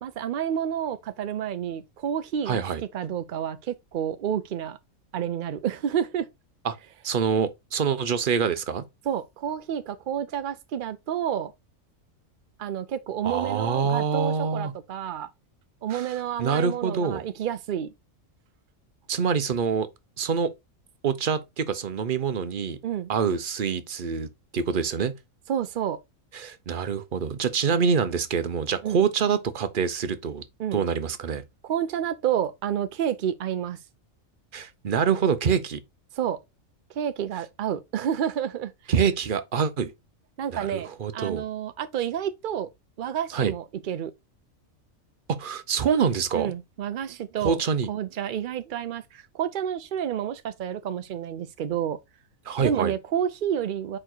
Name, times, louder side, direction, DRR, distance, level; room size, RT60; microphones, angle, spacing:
voice 1, 0.0-2.6 2.9-4.8 5.1-6.3 9.1-11.5 12.6-15.3 15.8-17.9 22.8-23.1 25.5-26.0 28.8-29.0 30.6-30.8 31.6-33.8 36.1-36.4 36.9-38.9 40.4-42.7 43.0-44.1 46.3-47.6 47.9-52.0 52.6-54.0, right 9 dB, 70° right, 0.4 m, -29 dB
voice 2, 2.5-2.8 6.6-6.8 7.0-8.8 13.2-14.7 15.9-17.3 19.1-19.9 20.2-20.5 21.0-22.8 23.1-24.3 24.5-25.1 26.3-30.4 30.7-31.4 34.5-35.8 38.9-39.9 40.5-41.4 43.3-43.5 45.3-46.5 47.4-47.9 52.5-52.9, right 6 dB, 45° right, 0.8 m, -25 dB
4.9 x 4.5 x 4.4 m
omnidirectional pair, 1.4 m